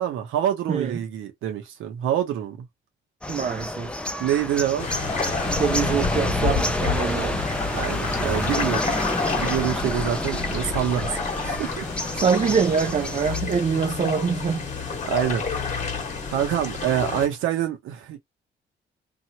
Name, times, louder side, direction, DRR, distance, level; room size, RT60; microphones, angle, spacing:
voice 1, 0.0-2.6 4.2-4.9 7.7-11.9 14.8-15.9 16.3-18.2, right 10 dB, 85° right, 0.9 m, -26 dB
sound 1, 3.2-13.4, left 1 dB, 5° left, 0.6 m, -29 dB
voice 2, 3.3-4.0 5.5-7.4 12.1-14.7, right 6 dB, 40° right, 0.6 m, -24 dB
sound 2, 4.8-17.3, left 5 dB, 40° left, 1.3 m, -30 dB
2.9 x 2.5 x 2.8 m
cardioid pair, 90°, 20 cm